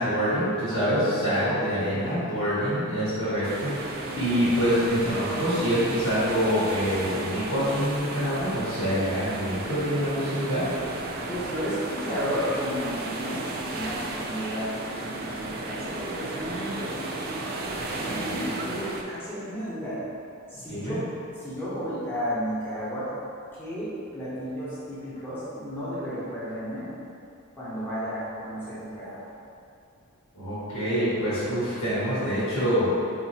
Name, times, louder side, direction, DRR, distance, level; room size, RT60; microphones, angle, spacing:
voice 1, 0.0-10.7 20.7-21.0 30.3-33.0, equal, 80° left, -11 dB, 1.5 m, -26 dB
voice 2, 1.1-2.2 4.0-4.5 11.3-17.3 17.9-20.0 20.5-21.0 21.3-23.1 23.6-26.8 27.6-29.2, equal, 10° left, -12 dB, 1.1 m, -33 dB
sound 1, 3.4-19.0, right 2 dB, 45° right, 0.3 m, -34 dB
4.0 x 2.8 x 2.8 m, 2.5 s
head